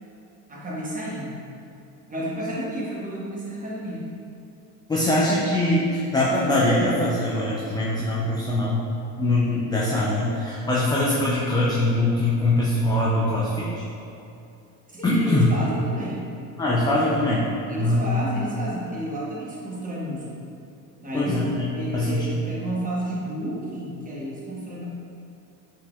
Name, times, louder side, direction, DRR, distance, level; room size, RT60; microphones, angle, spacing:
voice 1, 0.5-1.3 2.1-4.1 14.9-16.2 17.7-20.5 21.0-24.8, right 1 dB, 15° right, -5 dB, 1.1 m, -31 dB
voice 2, 4.9-8.8 9.2-13.7 15.0-15.5 16.6-17.4 17.8-18.2 21.1-21.7 21.9-22.4, left 1 dB, 10° left, -6 dB, 0.3 m, -22 dB
5.6 x 3.4 x 2.3 m, 2.7 s
hypercardioid pair, 85°, 48 cm